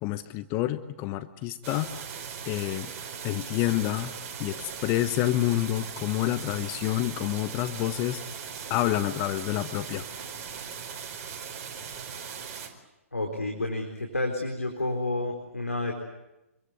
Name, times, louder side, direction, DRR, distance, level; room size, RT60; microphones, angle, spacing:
voice 1, 0.0-1.9 2.5-2.9 3.2-4.1 4.4-8.2 8.7-10.0, left 14 dB, 30° left, 11 dB, 1.0 m, -28 dB
sound 1, 1.6-12.7, right 7 dB, 35° right, 4.5 m, -39 dB
voice 2, 13.1-15.9, left 2 dB, 90° left, 2 dB, 4.1 m, -30 dB
27.0 x 22.5 x 8.3 m, 0.97 s
figure-of-eight pair, 125°, 8 cm